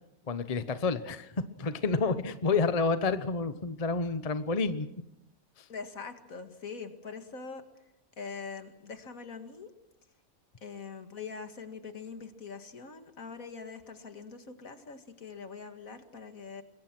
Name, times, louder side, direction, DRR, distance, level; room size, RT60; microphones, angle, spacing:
voice 1, 0.3-1.3 1.6-4.9, left 4 dB, 30° left, 11 dB, 1.0 m, -29 dB
voice 2, 5.7-7.6 8.2-9.7 10.6-16.6, left 5 dB, 70° left, 7 dB, 2.3 m, -43 dB
27.0 x 22.0 x 6.1 m, 0.83 s
omnidirectional pair, 1.5 m